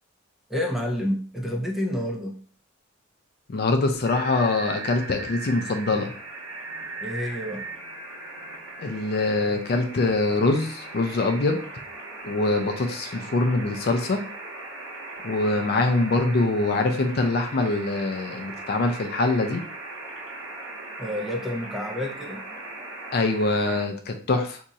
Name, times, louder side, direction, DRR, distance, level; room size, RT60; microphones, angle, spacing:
voice 1, 0.5-2.4 7.0-7.6 21.0-22.4, left 1 dB, ahead, 1 dB, 0.5 m, -29 dB
voice 2, 3.5-6.1 8.8-11.6 12.2-14.2 15.2-19.6 23.1-24.6, left 2 dB, 55° left, 5 dB, 0.4 m, -24 dB
sound 1, 4.0-23.8, right 2 dB, 65° right, 1.1 m, -38 dB
2.7 x 2.4 x 4.0 m, 0.42 s
head